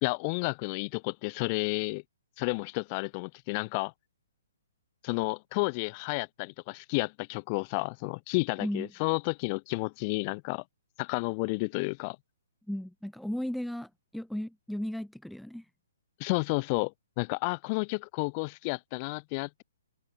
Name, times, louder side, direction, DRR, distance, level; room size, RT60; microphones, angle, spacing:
voice 1, 0.0-2.0 2.4-3.9 5.0-10.6 11.0-12.2 16.2-19.6, left 32 dB, 35° left, 0.7 m, -31 dB
voice 2, 8.6-8.9 12.7-15.7, equal, ahead, 0.4 m, -35 dB
figure-of-eight pair, 130°, 0 cm